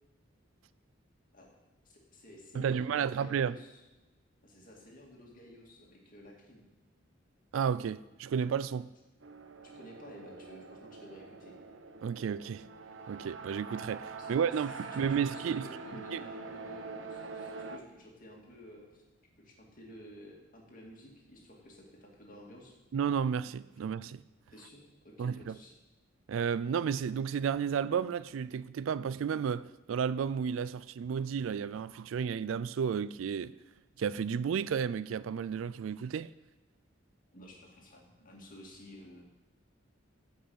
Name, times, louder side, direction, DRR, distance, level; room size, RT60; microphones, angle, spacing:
voice 1, 1.8-3.7 4.4-6.7 9.6-11.6 14.2-14.4 14.9-19.0 19.4-22.8 24.5-25.8 37.3-39.2, equal, 45° left, 2.3 m, -52 dB
voice 2, 2.5-3.5 7.5-8.9 12.0-12.7 13.1-15.7 16.1-16.2 22.9-24.2 25.2-25.5 26.3-33.5 34.0-36.3, right 7 dB, 90° right, 0.3 m, -32 dB
sound 1, 9.2-17.8, right 4 dB, 70° right, 0.9 m, -45 dB
15.0 x 5.6 x 7.8 m
head